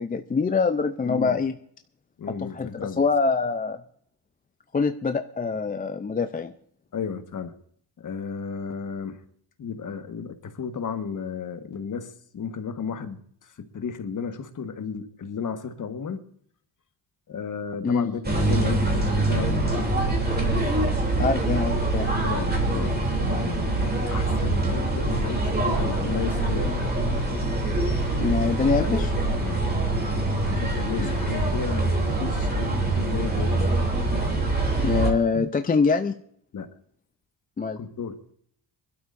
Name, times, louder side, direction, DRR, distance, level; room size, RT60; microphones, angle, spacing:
voice 1, 0.0-1.5 2.3-3.8 4.7-6.5 17.8-18.1 21.2-22.1 28.2-29.1 31.0-31.1 34.8-36.1 37.6-37.8, left 4 dB, 20° left, 8 dB, 0.5 m, -24 dB
voice 2, 1.0-1.4 2.2-3.0 6.9-7.5 8.0-9.2 9.6-13.2 13.6-16.2 17.3-20.0 22.2-23.7 24.0-26.8 29.4-29.6 30.4-33.7 36.5-36.7 37.8-38.1, left 6 dB, 45° left, 8 dB, 1.5 m, -33 dB
sound 1, 18.2-35.1, right 2 dB, 20° right, 3.1 m, -24 dB
25.0 x 12.0 x 2.6 m, 0.63 s
cardioid pair, 135°, 43 cm